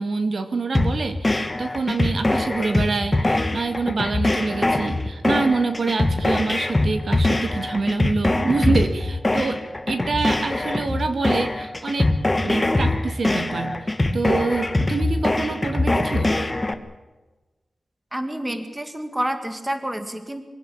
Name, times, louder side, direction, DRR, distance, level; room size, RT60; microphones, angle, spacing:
voice 1, 0.0-9.6 9.9-12.1 12.4-13.8 14.1-16.3, right 4 dB, 50° right, 8 dB, 2.2 m, -26 dB
sound 1, 0.7-16.7, left 2 dB, 15° left, 1.5 m, -23 dB
voice 2, 18.1-20.4, right 1 dB, 10° right, 8 dB, 2.0 m, -28 dB
24.5 x 16.5 x 8.7 m, 1.2 s
wide cardioid pair, 165°, 0 cm